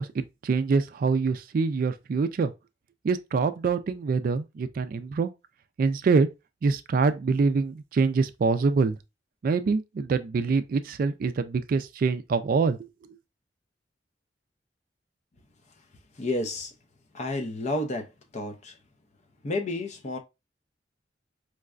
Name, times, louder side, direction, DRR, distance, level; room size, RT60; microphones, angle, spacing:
voice 1, 0.0-2.5 3.0-5.3 5.8-6.3 6.6-9.0 9.4-12.8, right 4 dB, 50° right, 0.3 m, -25 dB
voice 2, 16.2-16.7 17.1-18.1 18.3-18.7 19.4-20.2, left 2 dB, 40° left, 0.6 m, -30 dB
4.6 x 2.2 x 2.3 m
head